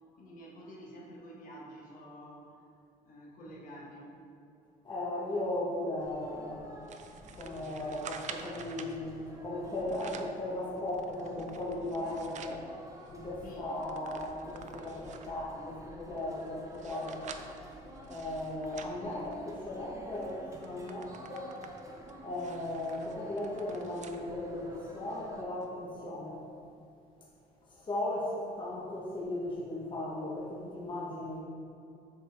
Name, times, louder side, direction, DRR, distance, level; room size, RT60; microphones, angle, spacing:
voice 1, 0.1-2.5 3.0-4.2 13.4-13.7 15.1-15.9, equal, 55° left, -4 dB, 1.4 m, -49 dB
voice 2, 4.8-6.7 7.3-12.7 13.1-17.2 18.1-21.6 22.2-26.4 27.7-31.4, left 1 dB, 30° left, -6 dB, 1.1 m, -37 dB
sound 1, 6.0-25.4, right 1 dB, 20° right, 0.9 m, -51 dB
sound 2, 6.9-9.0 9.7-10.4 10.9-12.6 13.1-13.2 13.4-15.4 16.0-19.7 20.2-20.3 20.6-24.2 24.7-24.8 25.6-25.7, right 7 dB, 45° right, 0.4 m, -49 dB
7.7 x 4.4 x 3.4 m, 2.6 s
cardioid pair, 110°, 17 cm